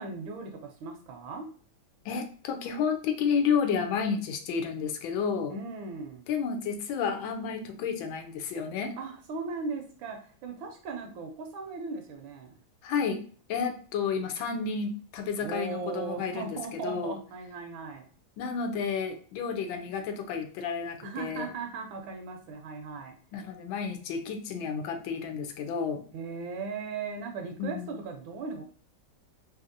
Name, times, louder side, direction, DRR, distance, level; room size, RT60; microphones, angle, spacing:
voice 1, 0.0-1.5 5.5-6.3 9.0-12.6 15.4-18.1 21.0-23.1 26.1-28.6, right 4 dB, 80° right, 3 dB, 1.3 m, -38 dB
voice 2, 2.0-5.5 6.3-9.0 12.8-13.2 13.5-17.2 18.4-21.5 23.3-26.0 27.6-27.9, left 6 dB, 80° left, 5 dB, 1.3 m, -31 dB
3.4 x 2.6 x 2.5 m, 0.43 s
omnidirectional pair, 2.2 m